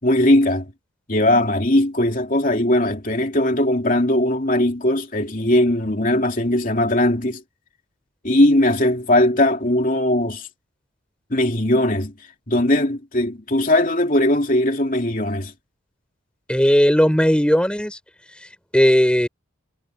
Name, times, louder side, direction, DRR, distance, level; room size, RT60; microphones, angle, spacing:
voice 1, 0.0-0.7 1.1-7.4 8.2-10.5 11.3-12.1 12.5-15.5, left 1 dB, 45° left, 3.0 m, -19 dB
voice 2, 16.5-18.0 18.7-19.3, equal, 5° left, 3.6 m, -16 dB
head